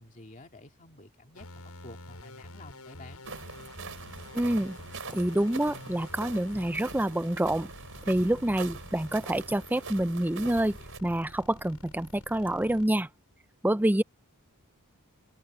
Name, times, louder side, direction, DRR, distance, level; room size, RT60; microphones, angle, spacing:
voice 1, 0.0-3.2, left 2 dB, 35° left, 2.3 m, -50 dB
sound 1, 1.3-12.9, left 1 dB, 85° left, 7.6 m, -48 dB
sound 2, 3.2-11.0, right 4 dB, 60° right, 5.2 m, -43 dB
voice 2, 4.3-4.8 5.1-7.7 8.1-13.1 13.6-14.0, right 1 dB, 10° right, 0.5 m, -27 dB
open air
head